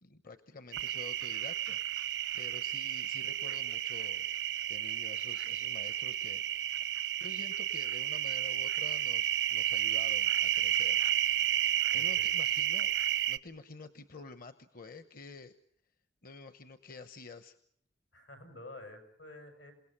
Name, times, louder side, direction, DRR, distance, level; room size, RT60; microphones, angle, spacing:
voice 1, 0.0-1.8 2.3-4.3 4.7-6.4 7.2-11.1 11.9-12.9 13.3-15.5 16.2-17.6, left 3 dB, 50° left, 11 dB, 1.0 m, -49 dB
sound 1, 0.7-13.4, right 12 dB, 80° right, 0.9 m, -32 dB
voice 2, 11.9-12.2 18.1-19.7, left 2 dB, 90° left, 6 dB, 6.6 m, -49 dB
28.5 x 18.0 x 7.3 m, 0.62 s
head